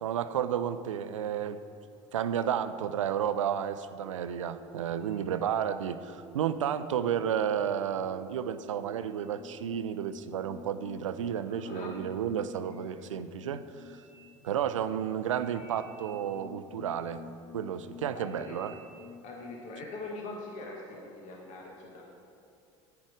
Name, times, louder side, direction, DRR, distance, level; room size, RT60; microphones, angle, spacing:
voice 1, 0.0-1.6 2.1-14.0 14.4-17.2 17.5-18.8, right 9 dB, 80° right, 12 dB, 0.5 m, -32 dB
sound 1, 4.0-19.8, left 3 dB, 85° left, 1.4 m, -50 dB
voice 2, 11.5-11.9 18.1-18.6 19.2-22.0, left 2 dB, 50° left, -1 dB, 1.6 m, -42 dB
9.5 x 9.2 x 5.0 m, 2.5 s
hypercardioid pair, 70°, 16 cm